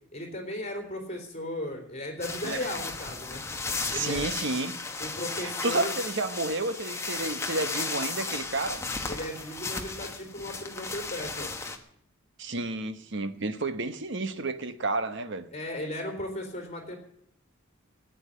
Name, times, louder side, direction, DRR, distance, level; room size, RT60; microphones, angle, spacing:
voice 1, 0.1-3.4 3.9-4.3 5.0-5.9 9.1-11.7 15.5-17.0, left 1 dB, 30° left, 3 dB, 3.6 m, -36 dB
sound 1, 2.2-11.8, left 3 dB, 15° left, 1.1 m, -35 dB
voice 2, 3.9-4.8 5.4-8.8 12.4-15.5, right 3 dB, 55° right, 10 dB, 1.1 m, -31 dB
14.0 x 9.0 x 9.8 m, 0.69 s
head